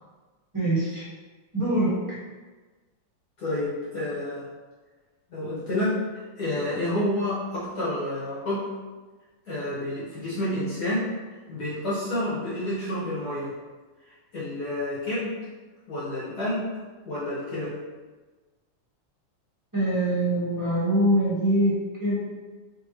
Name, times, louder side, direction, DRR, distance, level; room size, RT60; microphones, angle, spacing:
voice 1, 0.5-1.0 1.5-1.9 19.7-22.2, right 1 dB, 10° right, -10 dB, 1.2 m, -23 dB
voice 2, 3.4-4.5 5.3-6.0 6.4-8.7 9.5-11.1 11.5-13.5 14.3-15.3 15.9-16.7 17.0-17.7, left 1 dB, 55° left, -10 dB, 1.5 m, -29 dB
3.8 x 3.5 x 3.0 m, 1.3 s
omnidirectional pair, 2.4 m